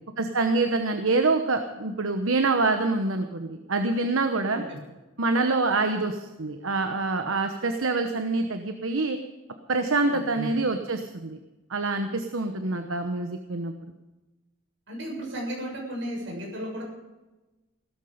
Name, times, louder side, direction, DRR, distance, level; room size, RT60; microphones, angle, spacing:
voice 1, 0.2-4.6 5.2-9.2 9.7-11.4 11.7-13.9, right 3 dB, 80° right, 7 dB, 1.1 m, -26 dB
voice 2, 10.1-10.5 12.7-12.8 14.9-16.8, equal, 60° right, -2 dB, 7.2 m, -34 dB
16.5 x 13.5 x 5.1 m, 1.1 s
head